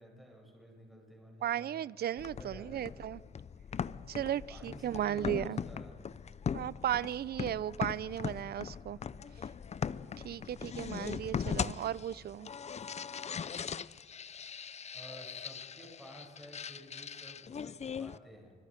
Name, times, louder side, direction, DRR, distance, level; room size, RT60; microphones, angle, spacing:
voice 1, 0.0-1.8 2.3-2.9 4.5-6.0 8.8-9.5 14.9-18.5, equal, ahead, -1 dB, 7.4 m, -53 dB
voice 2, 1.4-3.2 4.1-5.6 6.5-9.0 10.2-12.5, right 11 dB, 50° right, 21 dB, 0.5 m, -35 dB
sound 1, 2.2-18.2, left 7 dB, 35° left, 0.6 m, -40 dB
28.5 x 24.5 x 5.2 m, 2.1 s
cardioid pair, 90°, 20 cm